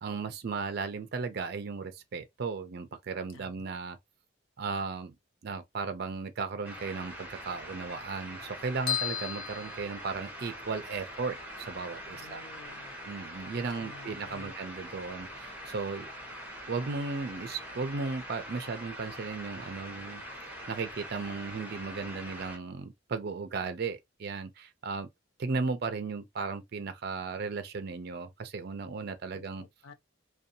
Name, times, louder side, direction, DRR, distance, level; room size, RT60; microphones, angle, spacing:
voice 1, 0.0-4.0 4.6-5.1 5.4-12.4 13.1-16.1 16.7-20.2 20.7-25.1 25.4-29.6, right 4 dB, 50° right, 0.4 m, -36 dB
sound 1, 6.6-22.6, equal, 10° right, 0.8 m, -43 dB
sound 2, 8.9-10.6, left 8 dB, 50° left, 1.0 m, -35 dB
voice 2, 12.1-12.9 13.7-14.5 29.3-29.9, left 3 dB, 90° left, 0.6 m, -51 dB
2.6 x 2.2 x 2.6 m
head